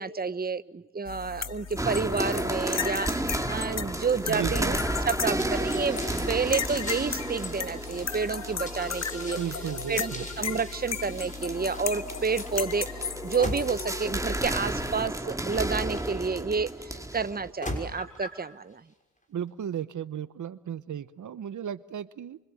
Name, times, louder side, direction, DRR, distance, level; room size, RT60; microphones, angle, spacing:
voice 1, 0.0-4.8 5.0-6.0 6.3-9.4 9.9-10.1 10.4-18.8, right 5 dB, 30° right, 13 dB, 1.0 m, -30 dB
sound 1, 1.0-15.1, left 6 dB, 60° left, 1.3 m, -36 dB
sound 2, 1.8-17.5, right 1 dB, 10° right, 2.3 m, -33 dB
voice 2, 4.3-4.7 9.4-10.3 19.3-22.4, right 9 dB, 80° right, 15 dB, 0.9 m, -35 dB
sound 3, 5.4-16.7 17.3-18.4, left 1 dB, 25° left, 6.2 m, -42 dB
29.5 x 25.0 x 7.8 m, 0.96 s
cardioid pair, 65°, 30 cm